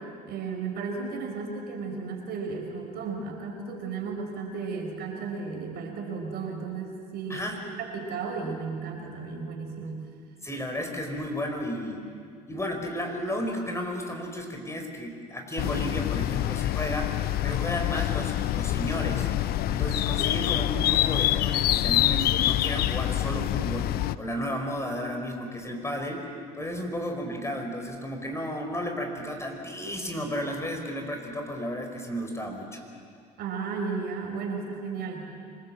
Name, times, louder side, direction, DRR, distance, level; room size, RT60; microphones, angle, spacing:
voice 1, 0.0-10.1 33.4-35.3, right 4 dB, 55° right, 2 dB, 5.3 m, -34 dB
voice 2, 7.3-7.6 10.4-12.1 12.5-17.1 17.4-19.3 19.7-26.3 26.6-32.8, equal, 15° left, 3 dB, 4.6 m, -33 dB
sound 1, 15.6-24.2, left 14 dB, 50° left, 0.7 m, -26 dB
26.5 x 20.5 x 7.7 m, 2.2 s
hypercardioid pair, 70°, 20 cm